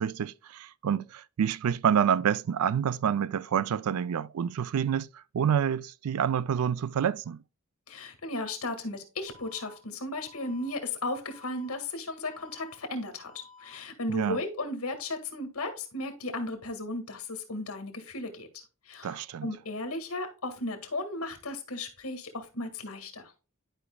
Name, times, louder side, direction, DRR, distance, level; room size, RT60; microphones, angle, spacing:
voice 1, 0.0-7.4 14.1-14.4 19.0-19.5, right 8 dB, 85° right, 0.4 m, -28 dB
voice 2, 7.9-18.5 18.8-23.3, left 2 dB, 80° left, 1.7 m, -35 dB
Alarm, 9.3-9.8 10.3-10.8 11.3-11.8 12.3-12.8 13.3-13.8, left 4 dB, 35° left, 1.4 m, -53 dB
11.5 x 5.1 x 2.2 m
head